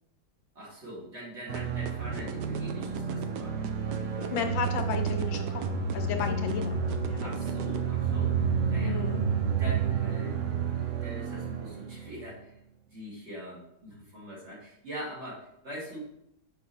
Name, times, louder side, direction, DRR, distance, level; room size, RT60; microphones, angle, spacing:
voice 1, 0.6-3.6 7.2-8.3 8.7-9.0 9.5-12.5 12.9-16.0, equal, 35° right, -6 dB, 2.3 m, -43 dB
sound 1, 1.5-7.8, right 8 dB, 70° right, 1.1 m, -39 dB
sound 2, 1.5-12.2, right 6 dB, 90° right, 0.6 m, -30 dB
voice 2, 4.2-5.6 5.9-7.7 8.8-9.2, left 6 dB, 85° left, 5 dB, 1.6 m, -34 dB
6.1 x 5.1 x 4.0 m, 0.77 s
omnidirectional pair, 2.1 m